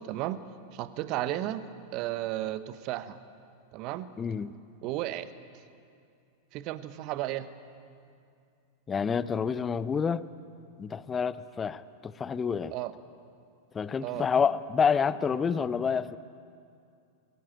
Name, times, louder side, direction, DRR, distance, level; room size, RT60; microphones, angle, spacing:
voice 1, 0.1-0.4 0.7-1.6 1.9-3.2 3.7-4.1 4.8-5.3 6.5-7.5 12.7-12.9 14.0-14.3, right 14 dB, 40° right, 13 dB, 1.1 m, -33 dB
voice 2, 4.2-4.5 8.9-10.3 10.8-12.7 13.7-16.2, left 6 dB, 20° left, 16 dB, 0.6 m, -28 dB
22.0 x 16.0 x 8.9 m, 2.4 s
figure-of-eight pair, 90°, 0 cm